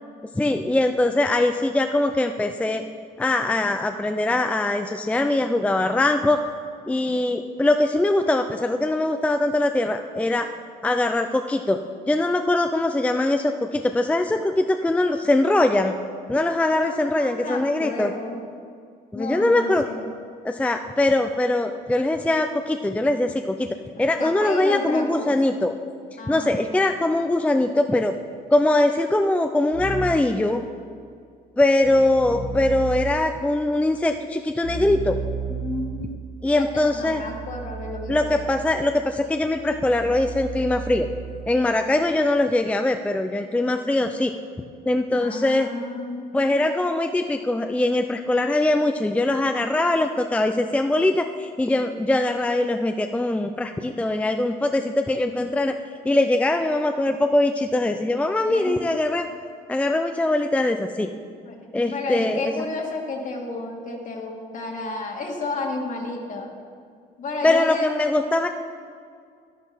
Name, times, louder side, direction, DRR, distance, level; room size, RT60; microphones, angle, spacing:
voice 1, 0.4-2.8 3.2-6.4 6.9-10.5 10.8-11.8 12.1-15.9 16.3-18.1 19.1-19.9 20.4-25.7 26.3-28.1 28.5-30.6 31.6-35.2 36.4-37.2 38.1-41.1 41.5-44.3 44.9-45.7 46.3-55.7 56.0-59.3 59.7-61.1 61.7-62.5 67.4-68.5, left 2 dB, 10° left, 6 dB, 0.4 m, -22 dB
voice 2, 16.8-18.4 19.1-20.1 24.2-25.6 26.2-26.5 35.5-36.2 36.5-38.5 45.1-46.3 58.5-58.8 61.5-61.6 61.9-66.5 67.2-67.9, left 3 dB, 50° left, 1 dB, 2.0 m, -32 dB
Keyboard (musical), 29.7-30.4 31.8-33.4 34.6-41.7, right 5 dB, 45° right, 2.3 m, -34 dB
11.0 x 11.0 x 4.3 m, 2.1 s
cardioid pair, 110°, 17 cm